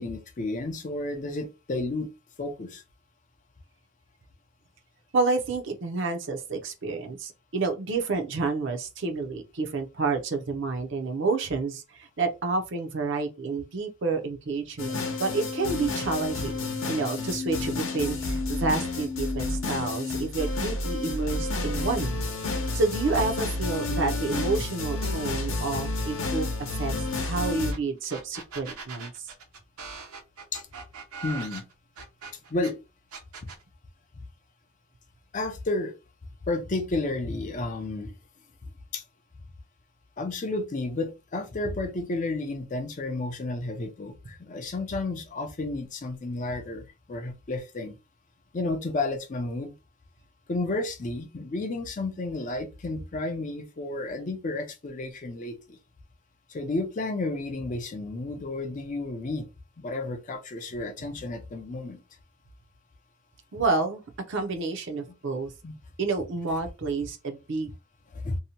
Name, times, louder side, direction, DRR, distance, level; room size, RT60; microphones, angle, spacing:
voice 1, 0.0-2.1 2.4-2.8 30.5-30.6 31.2-31.6 32.5-32.8 33.4-33.5 35.3-35.9 36.5-38.1 38.9-39.0 40.2-48.0 48.5-49.7 50.5-55.8 56.5-59.5 59.8-62.0 65.6-65.7 68.1-68.4, left 2 dB, 35° left, 0.4 m, -32 dB
voice 2, 5.1-22.2 22.7-26.5 26.8-29.3 63.5-64.0 64.3-65.5 66.0-67.7, right 3 dB, 55° right, 0.5 m, -29 dB
sound 1, 14.8-27.7, left 2 dB, 65° left, 0.8 m, -30 dB
sound 2, 27.7-27.8 28.1-32.7 33.1-33.6, right 5 dB, 90° right, 0.8 m, -40 dB
2.7 x 2.1 x 2.8 m
head